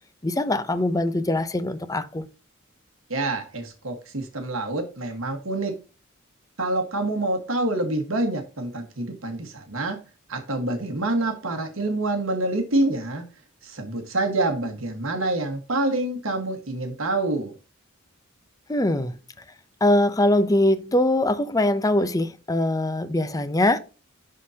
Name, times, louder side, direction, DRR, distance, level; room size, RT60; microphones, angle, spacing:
voice 1, 0.2-2.3 18.7-19.2 19.8-23.8, left 1 dB, 15° left, 0.6 m, -22 dB
voice 2, 3.1-5.7 6.6-10.0 10.3-13.2 13.6-17.5, right 2 dB, 75° right, 1.5 m, -27 dB
11.5 x 3.9 x 2.8 m
head